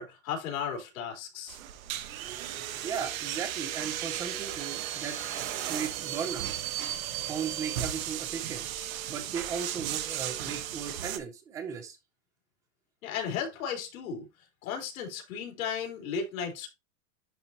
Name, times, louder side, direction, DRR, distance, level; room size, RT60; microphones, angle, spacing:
voice 1, 0.0-1.6 13.0-14.3 14.6-16.7, left 7 dB, 90° left, 3.6 m, -35 dB
sound 1, 1.5-11.2, right 11 dB, 85° right, 1.2 m, -35 dB
voice 2, 2.2-5.2 5.7-6.5 7.3-8.7 9.1-12.0, right 7 dB, 10° right, 0.4 m, -37 dB
11.0 x 4.2 x 2.8 m
supercardioid pair, 170°, 40 cm